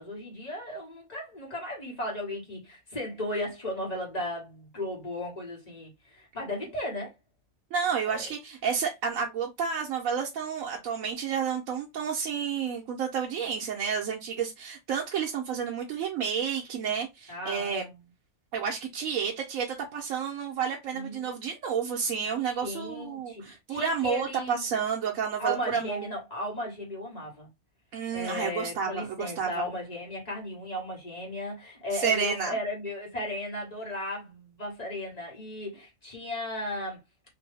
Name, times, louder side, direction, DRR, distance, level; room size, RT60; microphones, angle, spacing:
voice 1, 0.0-7.1 8.0-8.3 17.3-18.0 20.9-21.3 22.6-24.8 25.4-27.5 28.1-37.0, left 1 dB, 30° left, 1.5 m, -35 dB
voice 2, 7.7-17.9 18.5-26.1 27.9-29.6 31.9-32.6, right 6 dB, 75° right, 1.0 m, -30 dB
3.0 x 2.6 x 3.3 m
omnidirectional pair, 1.4 m